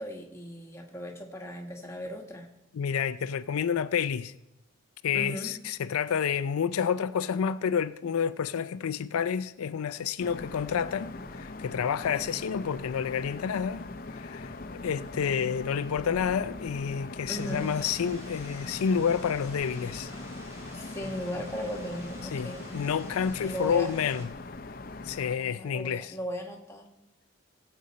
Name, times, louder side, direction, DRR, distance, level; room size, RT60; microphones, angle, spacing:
voice 1, 0.0-2.5 5.1-5.5 17.3-17.7 20.7-22.7 23.4-23.9 25.4-26.9, left 1 dB, 10° left, 1.3 m, -37 dB
voice 2, 2.7-4.3 5.0-13.8 14.1-14.6 14.8-20.1 22.3-24.3 25.1-26.1, left 7 dB, 90° left, 0.4 m, -29 dB
sound 1, 10.2-25.3, left 2 dB, 45° left, 0.6 m, -41 dB
sound 2, 17.3-24.3, equal, 15° right, 2.6 m, -49 dB
18.0 x 7.8 x 4.2 m
head